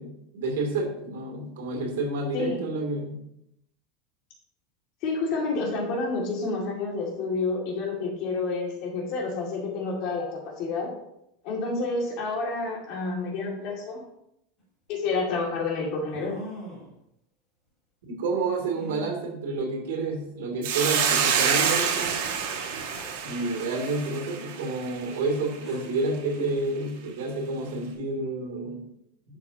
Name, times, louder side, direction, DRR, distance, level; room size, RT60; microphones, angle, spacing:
voice 1, 0.0-3.2 18.1-22.2 23.2-28.9, right 3 dB, 90° right, 2 dB, 2.7 m, -29 dB
voice 2, 5.0-10.9 11.4-14.0 14.9-16.3, left 3 dB, 40° left, -1 dB, 2.3 m, -29 dB
sound 1, 14.6-14.7 16.1-17.0 18.7-19.1 20.1-20.2 20.8-20.9 22.9-23.3 25.3-25.4 25.6-26.1, equal, 15° left, 3.1 m, -42 dB
Hiss, 20.6-25.1, right 7 dB, 60° right, 1.9 m, -27 dB
11.0 x 6.7 x 2.9 m, 0.80 s
supercardioid pair, 175°, 0 cm